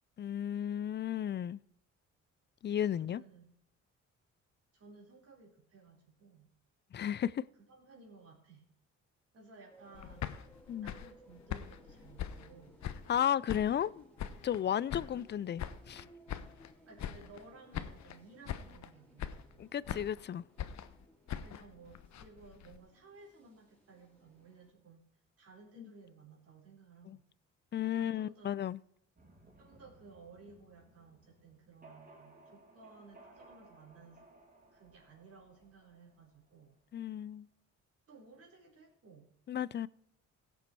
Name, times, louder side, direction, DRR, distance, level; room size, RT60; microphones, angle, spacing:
voice 1, 0.2-1.6 2.6-3.2 6.9-7.4 10.7-10.9 13.1-14.0 14.4-16.0 19.6-20.4 25.8-25.9 27.1-27.2 27.7-28.8 36.9-37.5 39.5-39.9, left 10 dB, 35° left, 0.4 m, -34 dB
voice 2, 2.9-3.5 4.7-6.5 7.7-8.6 9.3-10.3 10.8-12.8 16.9-19.8 21.4-25.1 25.4-27.2 27.8-28.5 29.6-34.2 34.7-36.8 38.1-39.3, right 4 dB, 50° right, 4.5 m, -57 dB
sound 1, 9.7-24.7, equal, 5° left, 4.6 m, -62 dB
sound 2, 9.9-13.2 13.5-14.6 14.9-16.7 17.0-17.5 17.7-18.2 18.5-18.9 19.2-20.2 20.6-22.8, left 9 dB, 65° left, 1.0 m, -42 dB
sound 3, 29.2-36.8, right 2 dB, 30° right, 2.6 m, -61 dB
16.5 x 7.0 x 4.6 m
cardioid pair, 90°, 30 cm